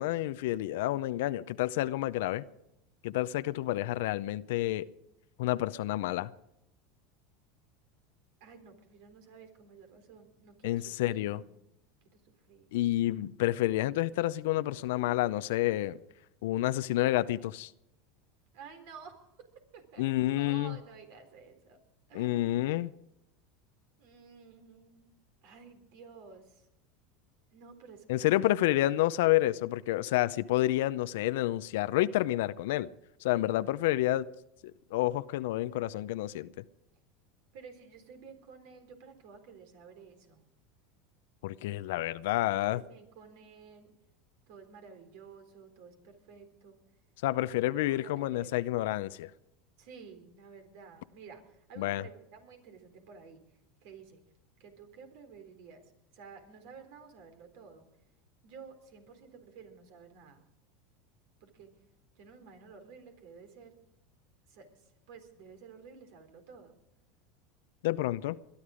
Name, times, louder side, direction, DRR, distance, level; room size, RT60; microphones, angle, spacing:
voice 1, 0.0-2.5 3.0-4.9 5.4-6.3 10.6-11.4 12.7-16.0 16.4-17.7 20.0-20.8 22.1-22.9 28.1-32.9 33.2-34.3 34.9-36.5 41.4-42.8 47.2-49.3 51.8-52.0 67.8-68.4, left 16 dB, 75° left, 0.6 m, -29 dB
voice 2, 8.4-11.6 12.1-12.7 18.5-21.8 22.1-22.7 24.0-26.7 27.5-28.3 28.6-28.8 37.5-40.4 42.5-43.9 44.5-46.8 47.6-48.5 49.8-54.2 54.6-57.9 58.4-60.5 61.4-61.7 62.2-63.8 64.5-66.8, right 5 dB, 70° right, 3.8 m, -52 dB
21.5 x 11.5 x 5.0 m
supercardioid pair, 115°, 0 cm